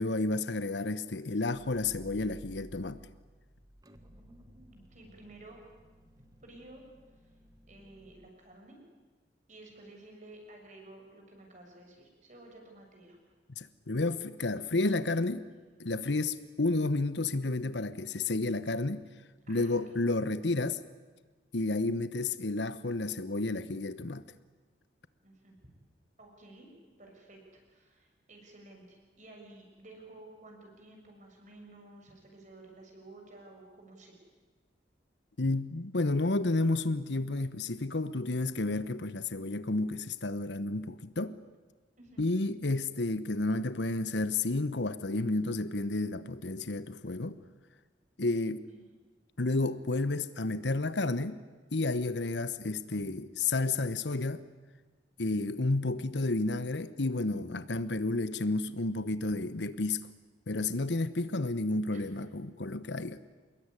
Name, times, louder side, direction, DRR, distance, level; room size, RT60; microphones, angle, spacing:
voice 1, 0.0-3.0 13.6-15.5 15.8-19.0 19.5-20.8 21.5-24.2 35.4-41.4 42.2-47.4 48.2-48.6 49.4-51.4 51.7-54.4 55.2-60.0 60.5-63.2, left 2 dB, 80° left, 1.2 m, -31 dB
sound 1, 1.5-8.3, equal, 20° right, 1.6 m, -55 dB
voice 2, 4.1-5.6 6.4-6.8 7.7-8.8 9.5-13.2 16.1-16.2 19.5-20.0 25.2-25.6 26.2-26.7 27.0-34.2 42.0-42.2 48.7-49.0 61.9-62.1, right 2 dB, 45° right, 6.9 m, -53 dB
25.5 x 21.0 x 10.0 m
head